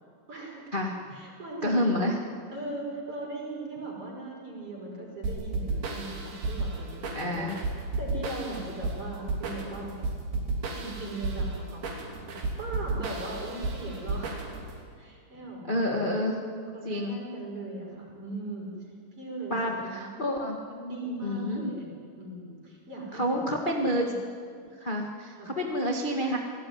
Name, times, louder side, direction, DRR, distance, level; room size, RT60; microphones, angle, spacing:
voice 1, 0.3-0.7 1.1-2.0 2.5-7.5 8.0-10.0 10.7-12.1 12.6-14.4 15.0-18.8 19.1-20.2 20.7-24.1 25.4-25.5, right 2 dB, 35° right, -1 dB, 6.5 m, -39 dB
voice 2, 1.6-2.1 7.1-7.6 15.6-16.4 16.8-17.2 19.5-20.6 21.2-21.7 23.1-24.1 24.8-26.4, equal, 35° left, 0 dB, 0.8 m, -28 dB
sound 1, 5.2-14.8, right 3 dB, 80° right, 5.1 m, -33 dB
28.0 x 18.0 x 9.6 m, 2.2 s
omnidirectional pair, 4.4 m